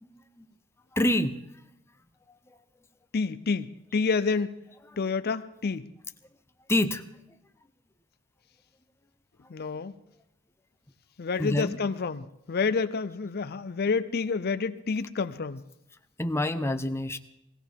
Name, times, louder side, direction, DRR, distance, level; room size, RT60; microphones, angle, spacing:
voice 1, 0.9-1.3 5.0-5.1 6.7-7.0 11.4-11.8 16.2-17.2, left 1 dB, 10° left, 7 dB, 0.7 m, -27 dB
voice 2, 3.1-4.6 5.0-5.9 9.5-9.9 11.2-15.6, left 4 dB, 50° left, 13 dB, 0.5 m, -29 dB
20.5 x 16.0 x 3.6 m, 0.82 s
head